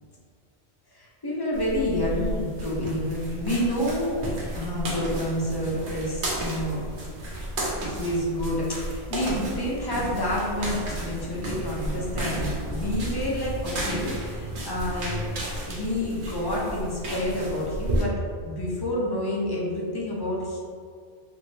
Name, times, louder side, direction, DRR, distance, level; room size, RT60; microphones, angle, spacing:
voice 1, 0.9-4.2 4.5-7.2 7.8-18.1 18.4-20.6, left 1 dB, 25° left, -5 dB, 0.6 m, -29 dB
sound 1, 1.5-18.0, right 1 dB, 80° right, 1.1 m, -32 dB
3.5 x 2.6 x 3.2 m, 2.1 s
omnidirectional pair, 1.1 m